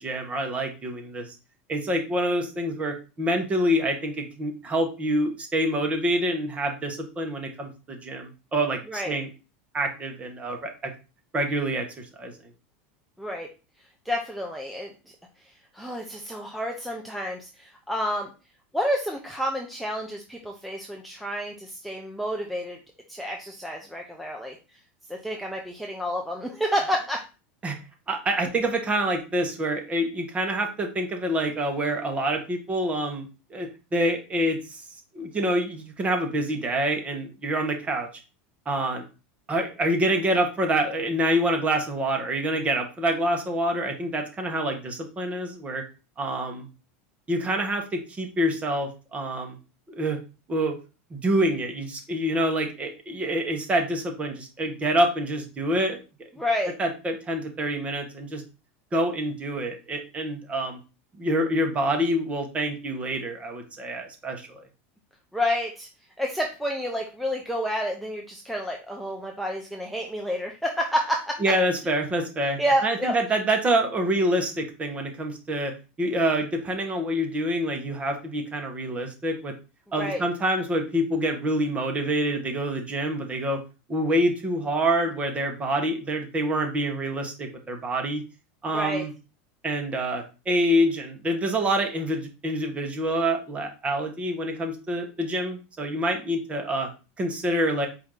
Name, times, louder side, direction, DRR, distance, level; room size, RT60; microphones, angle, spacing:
voice 1, 0.0-1.3 1.7-9.3 9.7-10.9 11.3-12.3 27.6-27.8 28.1-34.8 35.1-38.1 38.7-39.0 39.5-45.8 46.2-46.7 47.3-49.6 49.9-50.2 50.5-50.7 51.1-56.0 56.8-58.4 58.9-60.8 61.2-64.6 71.4-75.7 76.0-79.5 79.9-83.6 83.9-88.2 88.6-89.1 89.6-96.9 97.2-97.9, right 1 dB, 20° right, 4 dB, 1.0 m, -26 dB
voice 2, 13.2-13.5 14.1-14.9 15.7-18.3 18.7-22.8 23.1-24.6 25.1-27.2 56.4-56.7 65.3-65.9 66.2-71.4 72.6-73.1 80.0-80.2 88.7-89.0, equal, ahead, 1 dB, 0.5 m, -29 dB
4.6 x 2.6 x 3.7 m, 0.32 s
supercardioid pair, 130°, 6 cm